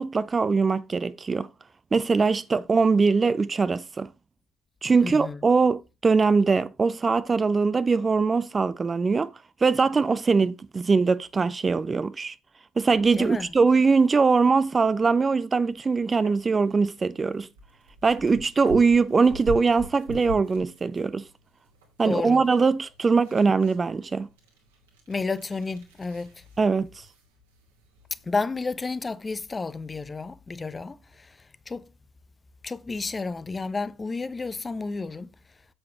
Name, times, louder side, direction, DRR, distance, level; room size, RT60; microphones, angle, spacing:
voice 1, 0.0-1.5 1.9-4.1 4.8-9.3 9.6-12.4 12.8-17.5 18.0-21.2 22.0-24.3 26.6-27.0, right 4 dB, 30° right, 0.5 m, -22 dB
voice 2, 5.0-5.4 13.2-13.5 22.0-22.4 25.1-26.3 28.3-31.0 31.7-31.9 32.6-35.3, left 3 dB, 25° left, 0.7 m, -31 dB
sound 1, 13.5-28.8, equal, 75° right, 2.4 m, -45 dB
8.7 x 7.7 x 2.9 m
figure-of-eight pair, 50°, 0 cm